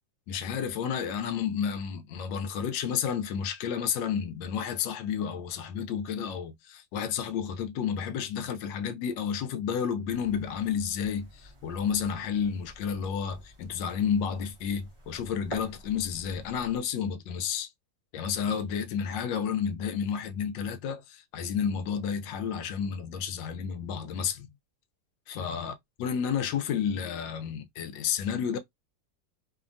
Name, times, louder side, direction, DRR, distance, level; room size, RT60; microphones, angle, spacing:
voice 1, 0.3-17.7 18.1-24.5 25.3-25.7 26.0-28.6, left 7 dB, 85° left, 1.3 m, -31 dB
sound 1, 10.1-16.8, equal, 30° right, 0.6 m, -48 dB
3.2 x 2.1 x 2.5 m
omnidirectional pair, 2.0 m